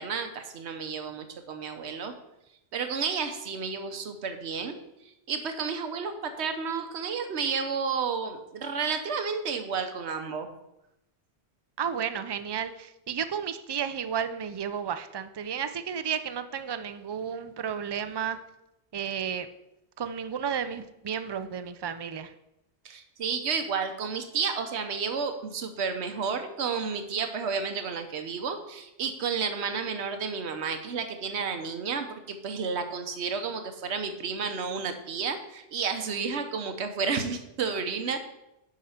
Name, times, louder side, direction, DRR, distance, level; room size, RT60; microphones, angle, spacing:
voice 1, 0.0-2.1 2.7-4.7 5.3-10.5 22.8-38.2, right 5 dB, 85° right, 7 dB, 1.2 m, -31 dB
voice 2, 11.8-18.4 18.9-19.5 20.0-22.3, right 8 dB, 40° right, 11 dB, 0.4 m, -32 dB
9.9 x 5.0 x 5.7 m, 0.87 s
omnidirectional pair, 1.1 m